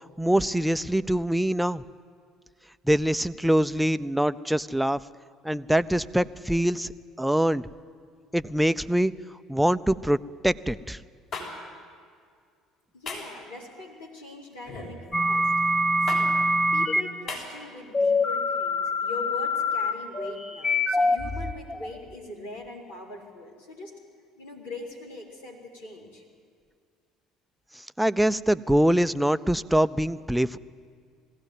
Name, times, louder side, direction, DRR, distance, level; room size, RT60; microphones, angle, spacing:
voice 1, 0.2-1.8 2.9-5.0 5.4-6.9 7.2-7.6 8.3-9.1 9.5-10.2 10.4-11.0 28.0-30.6, right 1 dB, 5° right, 14 dB, 0.6 m, -24 dB
sound 1, 11.3-11.5 13.1-13.3 14.7-15.0 16.1-16.2 17.3-17.4, left 4 dB, 55° left, 6.2 m, -34 dB
voice 2, 12.9-15.5 16.0-16.4 16.7-23.9 24.4-26.2, left 2 dB, 90° left, -3 dB, 4.0 m, -41 dB
sound 2, 15.1-17.0 17.9-22.0, left 1 dB, 20° left, 1.6 m, -24 dB
21.0 x 16.0 x 9.3 m, 2.1 s
hypercardioid pair, 60°, 0 cm